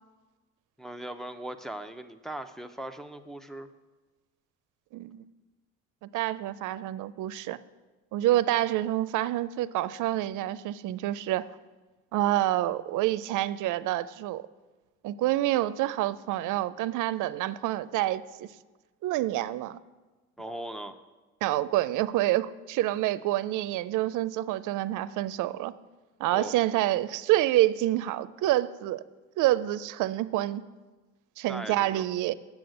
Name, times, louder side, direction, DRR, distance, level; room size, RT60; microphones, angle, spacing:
voice 1, 0.8-3.7 20.4-21.0 26.3-26.5 31.5-32.0, right 1 dB, ahead, 5 dB, 0.6 m, -39 dB
voice 2, 4.9-5.2 6.0-7.6 8.1-11.4 12.1-14.4 15.0-18.5 19.0-19.8 21.4-25.7 26.2-29.0 29.4-30.6 31.4-32.3, right 15 dB, 85° right, 16 dB, 0.5 m, -27 dB
7.8 x 7.2 x 7.7 m, 1.2 s
cardioid pair, 90°, 30 cm